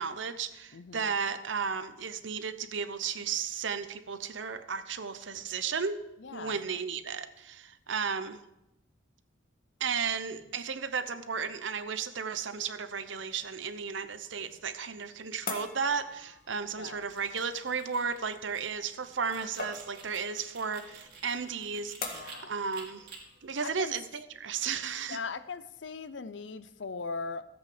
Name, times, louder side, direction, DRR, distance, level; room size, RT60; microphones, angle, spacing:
voice 1, 0.0-6.0 6.3-8.4 9.8-23.1 23.4-25.2, right 6 dB, 75° right, 11 dB, 0.8 m, -34 dB
voice 2, 0.7-1.1 6.2-6.6 16.8-17.1 22.1-22.5 23.6-23.9 25.1-27.5, left 4 dB, 65° left, 14 dB, 0.6 m, -39 dB
sound 1, 13.1-24.0, left 3 dB, 50° left, 1.7 m, -46 dB
sound 2, 16.8-22.4 22.7-23.2, right 5 dB, 55° right, 2.8 m, -51 dB
13.5 x 8.2 x 5.0 m, 0.90 s
head